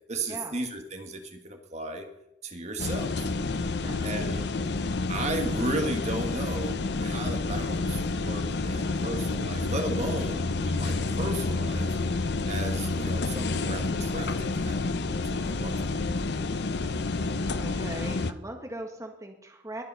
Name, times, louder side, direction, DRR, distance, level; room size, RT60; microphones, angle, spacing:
voice 1, 0.1-2.1 2.4-3.2 4.0-4.5 5.1-11.9 12.4-16.0 18.0-18.2, right 2 dB, 35° right, 5 dB, 1.7 m, -35 dB
sound 1, 2.8-18.3, left 3 dB, 60° left, 0.7 m, -29 dB
voice 2, 3.6-4.2 17.6-19.8, right 1 dB, 15° right, 2 dB, 1.6 m, -40 dB
Livestock farm animals working animals, 7.7-12.8, equal, 5° left, 5.1 m, -59 dB
21.5 x 8.8 x 5.6 m, 0.88 s
head